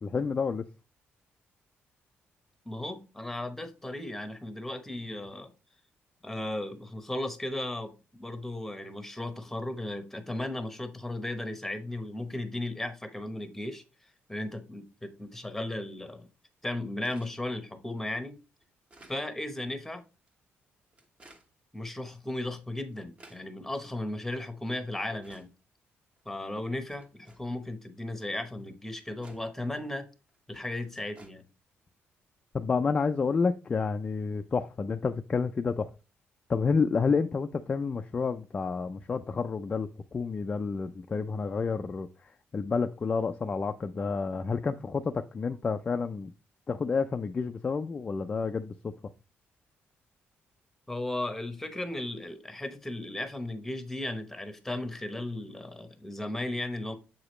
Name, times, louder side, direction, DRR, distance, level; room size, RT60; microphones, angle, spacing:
voice 1, 0.0-0.6 32.5-35.9 36.5-42.1 42.5-46.3 46.7-48.9, left 5 dB, 25° left, 0.3 m, -29 dB
voice 2, 2.6-5.5 6.2-13.8 14.3-16.3 16.6-18.4 19.1-20.0 21.7-25.5 26.2-30.1 30.5-31.4 50.9-57.0, left 1 dB, 5° left, 0.9 m, -36 dB
sound 1, 17.0-17.4 18.0-18.1 18.6-19.2 20.1-20.3 20.9-21.5 22.3-22.4 22.8-23.4 24.3-24.4 25.0-25.5 26.2-26.3 26.9-27.4 28.4-28.5 28.9-29.4 30.3-30.4 30.8-31.3, right 2 dB, 25° right, 1.1 m, -55 dB
7.3 x 4.9 x 3.1 m
cardioid pair, 150°, 4 cm